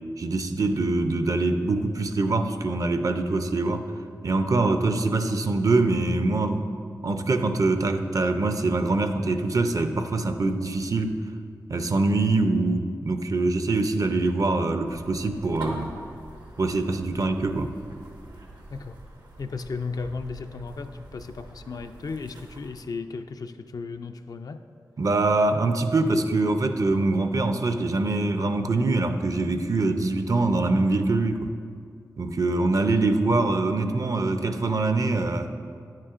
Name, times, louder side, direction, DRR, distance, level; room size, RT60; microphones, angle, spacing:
voice 1, 0.2-3.8 4.2-6.7 7.0-11.2 11.7-15.9 16.6-17.7 25.0-31.5 32.2-35.5, right 2 dB, 55° right, 8 dB, 0.5 m, -24 dB
sound 1, 14.8-22.8, right 1 dB, 80° right, 1.0 m, -45 dB
voice 2, 19.4-24.6, left 4 dB, 60° left, 7 dB, 0.3 m, -35 dB
9.5 x 7.5 x 2.5 m, 2.3 s
cardioid pair, 45°, 7 cm